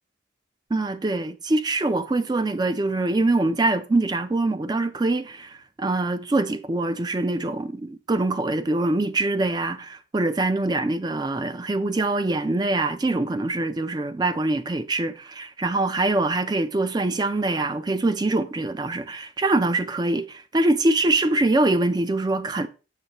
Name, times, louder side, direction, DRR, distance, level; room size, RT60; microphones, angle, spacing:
voice 1, 0.7-22.7, right 2 dB, 20° right, 0.4 m, -24 dB
6.6 x 6.4 x 2.9 m
head